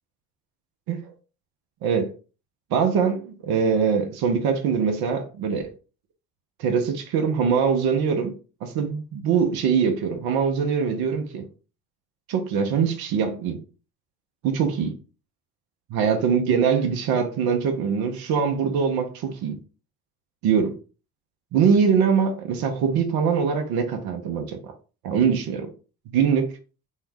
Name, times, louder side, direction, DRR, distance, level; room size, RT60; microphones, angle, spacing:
voice 1, 2.7-5.7 6.6-11.5 12.3-13.6 14.4-14.9 15.9-19.6 20.4-20.7 21.5-24.7 25.0-25.7 26.1-26.6, right 6 dB, 65° right, 0.7 m, -23 dB
2.7 x 2.1 x 3.3 m
hypercardioid pair, 50°, 40 cm